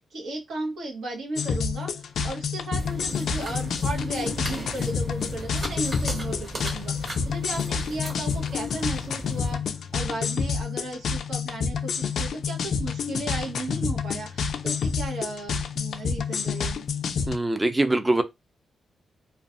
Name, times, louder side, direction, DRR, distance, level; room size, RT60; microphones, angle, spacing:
voice 1, 0.1-16.8, right 2 dB, 80° right, 1.0 m, -35 dB
sound 1, 1.4-17.4, left 6 dB, 70° left, 0.3 m, -29 dB
sound 2, 2.8-9.6, right 1 dB, 40° right, 1.3 m, -37 dB
voice 2, 17.3-18.2, right 2 dB, 15° right, 0.4 m, -23 dB
2.5 x 2.3 x 2.4 m
cardioid pair, 105°, 0 cm